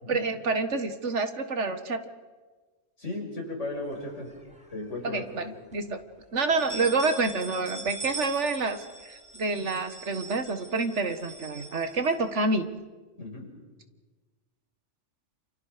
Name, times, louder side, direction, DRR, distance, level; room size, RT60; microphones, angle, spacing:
voice 1, 0.1-2.1 5.0-5.5 5.7-6.0 6.3-12.7, right 3 dB, 70° right, 9 dB, 1.8 m, -28 dB
voice 2, 3.0-4.3 4.7-5.8 8.0-8.1 13.2-13.5, left 2 dB, 75° left, 0 dB, 6.5 m, -36 dB
sound 1, 3.9-4.8 5.2-5.3 5.7-5.8 6.4-12.6, right 2 dB, 5° right, 3.6 m, -42 dB
29.5 x 28.5 x 5.1 m, 1.4 s
omnidirectional pair, 1.3 m